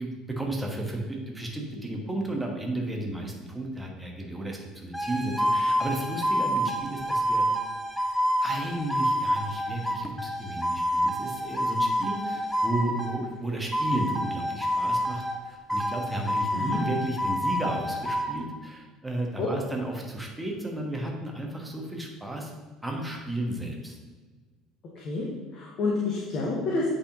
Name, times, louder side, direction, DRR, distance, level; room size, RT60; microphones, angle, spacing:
voice 1, 0.0-7.4 8.4-22.5 22.8-24.0, right 1 dB, 10° right, 0 dB, 1.2 m, -33 dB
sound 1, 4.9-13.2 13.7-15.4 15.7-18.3, equal, 5° left, 0.8 m, -28 dB
voice 2, 25.5-26.9, left 3 dB, 45° left, -4 dB, 1.0 m, -28 dB
8.5 x 4.1 x 2.7 m, 1.4 s
figure-of-eight pair, 60°, 0 cm